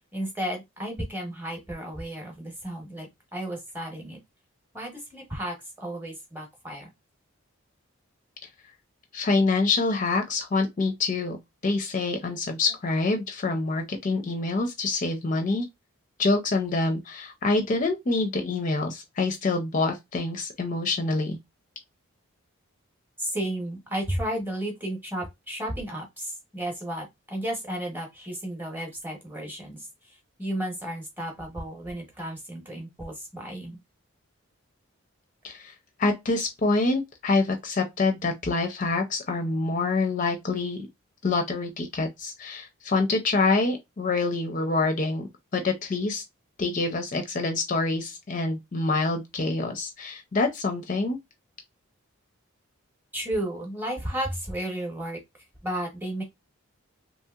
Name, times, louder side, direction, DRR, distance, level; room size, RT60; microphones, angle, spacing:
voice 1, 0.1-4.2 4.7-6.9 23.2-29.9 30.4-33.8 53.1-55.2 55.6-56.2, right 1 dB, 10° right, 0.8 m, -33 dB
voice 2, 9.1-11.4 11.6-15.7 16.2-21.4 35.4-35.7 36.0-40.9 41.2-45.3 45.5-46.2 46.6-51.2, left 3 dB, 35° left, 0.4 m, -26 dB
2.9 x 2.7 x 2.3 m
head